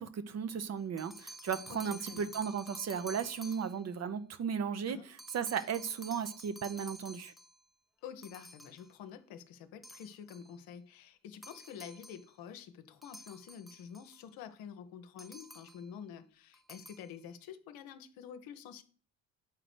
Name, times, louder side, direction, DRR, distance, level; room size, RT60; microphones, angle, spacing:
voice 1, 0.0-5.0 5.3-7.3, right 7 dB, 40° right, 0.8 m, -35 dB
sound 1, 0.8-3.9 5.2-7.6 8.2-8.9 9.8-10.5 11.4-12.3 13.0-14.2 15.2-15.9 16.5-17.1, right 1 dB, ahead, 0.5 m, -51 dB
voice 2, 1.7-2.3 4.9-5.1 8.0-18.8, left 8 dB, 60° left, 0.9 m, -48 dB
7.4 x 5.0 x 6.1 m
figure-of-eight pair, 45°, 41 cm